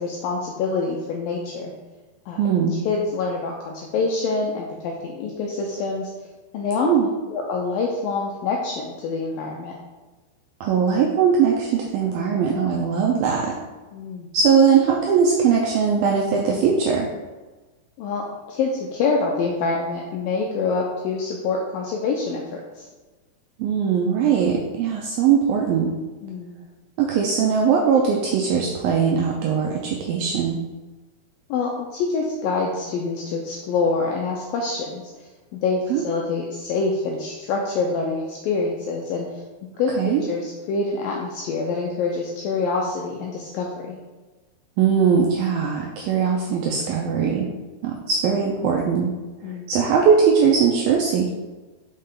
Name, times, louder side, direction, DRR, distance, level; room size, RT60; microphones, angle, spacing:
voice 1, 0.0-1.7 2.3-2.4 2.9-6.1 6.5-6.9 7.3-9.7 13.9-14.3 18.0-22.4 22.8-22.9 26.2-26.6 31.5-35.0 35.5-39.4 39.8-44.0 49.4-49.7, left 4 dB, 85° left, -1 dB, 2.0 m, -26 dB
voice 2, 2.4-2.8 6.8-7.1 10.6-13.5 14.3-17.1 23.6-25.9 27.0-30.6 35.9-36.0 40.0-40.2 44.8-47.5 47.8-49.1 49.7-51.3, right 6 dB, 85° right, -1 dB, 2.1 m, -20 dB
5.7 x 5.4 x 3.7 m, 1.2 s
omnidirectional pair, 4.8 m